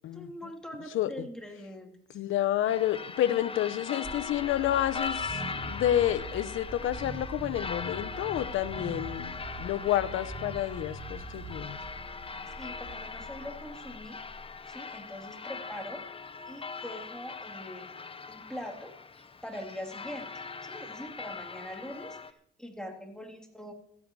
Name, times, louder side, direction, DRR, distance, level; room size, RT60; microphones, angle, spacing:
voice 1, 0.1-1.9 12.6-14.2 14.7-16.0 16.5-17.9 18.3-18.9 19.4-23.7, equal, 5° left, 2 dB, 3.1 m, -43 dB
voice 2, 2.1-11.8, left 12 dB, 80° left, 13 dB, 0.9 m, -29 dB
sound 1, 2.7-22.3, left 4 dB, 30° left, 0.9 m, -40 dB
sound 2, 4.0-14.9, right 2 dB, 25° right, 1.9 m, -43 dB
15.5 x 12.5 x 4.8 m, 0.67 s
cardioid pair, 90°, 20 cm